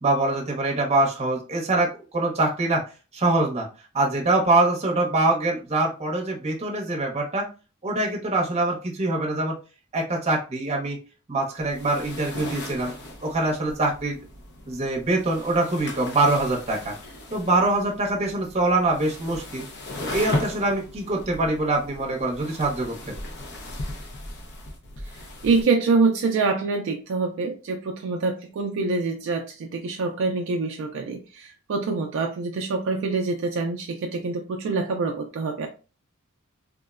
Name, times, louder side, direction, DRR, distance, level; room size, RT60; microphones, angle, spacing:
voice 1, 0.0-2.8 3.1-3.7 3.9-7.5 7.8-9.5 9.9-11.0 11.3-12.9 13.2-14.2 14.7-16.9 17.3-19.6 20.0-23.1, right 2 dB, 30° right, -1 dB, 0.7 m, -24 dB
sound 1, 11.6-25.6, left 2 dB, 50° left, 0.5 m, -37 dB
voice 2, 25.4-35.7, right 4 dB, 55° right, 3 dB, 0.3 m, -25 dB
3.6 x 2.1 x 2.3 m, 0.34 s
head